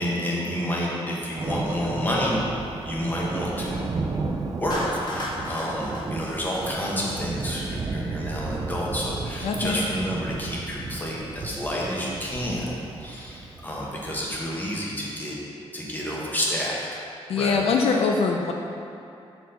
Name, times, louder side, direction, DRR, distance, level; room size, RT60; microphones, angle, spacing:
voice 1, 0.0-2.4 2.8-3.8 4.5-12.7 13.0-15.4 15.7-16.9 17.4-17.6, equal, 20° left, -5 dB, 1.2 m, -29 dB
Thunder, 1.4-14.4, right 3 dB, 35° right, 0.4 m, -33 dB
Clapping, 4.7-7.1, left 1 dB, 45° left, 1.2 m, -33 dB
voice 2, 9.4-9.8 17.3-18.5, left 4 dB, 75° left, 1 dB, 0.5 m, -23 dB
5.9 x 4.3 x 5.5 m, 2.6 s
wide cardioid pair, 135°, 10 cm